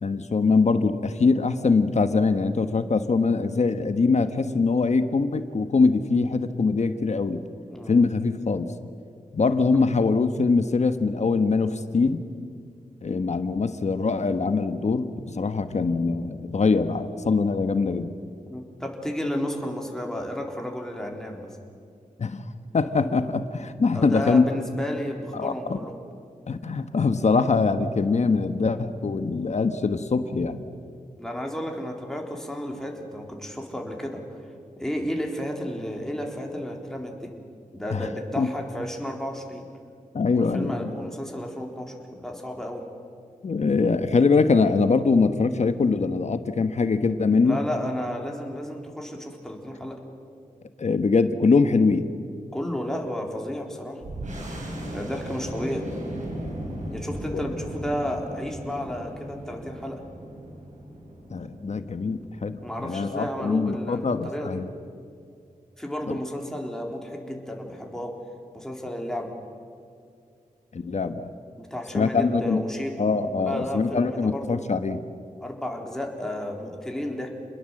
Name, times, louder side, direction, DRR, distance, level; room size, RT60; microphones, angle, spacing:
voice 1, 0.0-7.4 7.9-8.7 9.3-12.2 13.0-18.1 22.2-22.4 22.7-24.4 25.3-25.8 26.5-30.6 37.9-38.1 38.4-38.5 40.1-40.9 43.4-47.6 50.8-52.0 57.3-57.4 61.3-64.7 66.1-66.2 70.7-71.3 71.9-72.6 73.0-75.0, left 4 dB, 55° left, 10 dB, 1.3 m, -23 dB
voice 2, 7.7-8.0 18.5-21.5 23.9-26.0 31.2-34.2 34.8-37.3 37.7-39.6 40.3-42.8 47.4-50.0 52.5-54.0 54.9-55.9 56.9-60.0 62.6-64.6 65.8-68.2 68.5-69.3 71.6-73.0 73.4-74.6 75.4-77.3, left 1 dB, 5° left, 0 dB, 3.8 m, -32 dB
sound 1, 54.0-63.2, right 1 dB, 60° right, 6.7 m, -37 dB
29.0 x 21.0 x 7.8 m, 2.4 s
wide cardioid pair, 90°, 14 cm